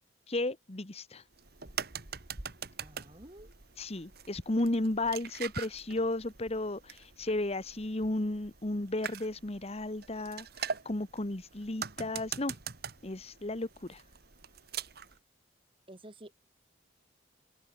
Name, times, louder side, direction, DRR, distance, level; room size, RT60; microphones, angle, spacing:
voice 1, 0.3-1.2 3.8-12.5 13.0-14.0, left 2 dB, 35° left, 1.3 m, -34 dB
sound 1, 1.3-15.2, right 7 dB, 55° right, 2.4 m, -43 dB
voice 2, 2.8-3.5 15.9-16.3, right 1 dB, 30° right, 4.4 m, -50 dB
open air
head